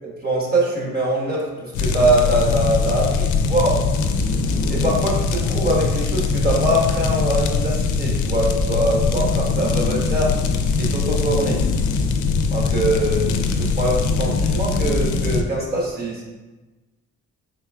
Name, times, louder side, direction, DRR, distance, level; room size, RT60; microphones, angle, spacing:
voice 1, 0.0-3.8 4.7-10.4 10.8-11.6 12.5-16.2, right 1 dB, 30° right, -3 dB, 1.3 m, -23 dB
sound 1, 1.7-15.4, left 4 dB, 75° left, 0.5 m, -21 dB
4.4 x 3.9 x 2.3 m, 1.2 s
cardioid pair, 90°, 30 cm